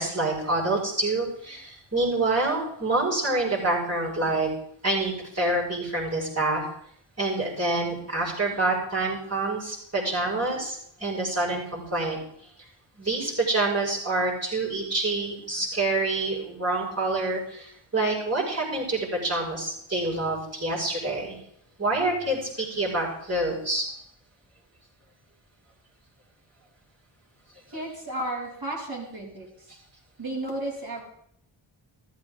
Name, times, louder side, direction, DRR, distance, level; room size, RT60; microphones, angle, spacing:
voice 1, 0.0-4.5 4.8-6.6 7.2-12.2 13.0-21.4 21.8-23.9 29.2-29.4, right 2 dB, 30° right, -4 dB, 5.8 m, -27 dB
voice 2, 27.7-29.5 30.2-31.0, right 1 dB, 45° right, -4 dB, 5.4 m, -33 dB
14.0 x 14.0 x 3.8 m, 0.70 s
wide cardioid pair, 70°, 49 cm